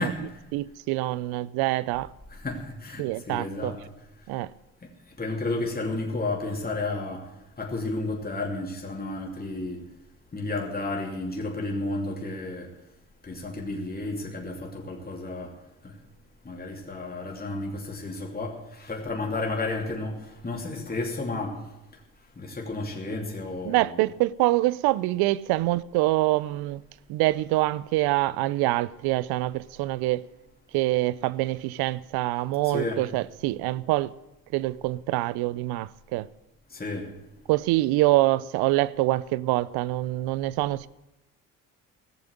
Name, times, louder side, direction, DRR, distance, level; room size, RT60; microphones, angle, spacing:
voice 1, 0.0-0.3 2.3-3.9 5.2-7.3 7.6-9.8 10.3-12.7 13.2-15.5 15.8-15.9 16.4-21.6 22.4-24.0 32.6-33.1 36.7-37.1, left 2 dB, 25° left, 2.9 m, -32 dB
voice 2, 0.5-2.1 3.0-3.7 4.3-4.5 23.6-26.8 27.1-30.2 30.7-34.1 34.5-36.3 37.5-40.9, right 18 dB, 70° right, 0.6 m, -25 dB
16.5 x 6.9 x 8.0 m
hypercardioid pair, 55°, 39 cm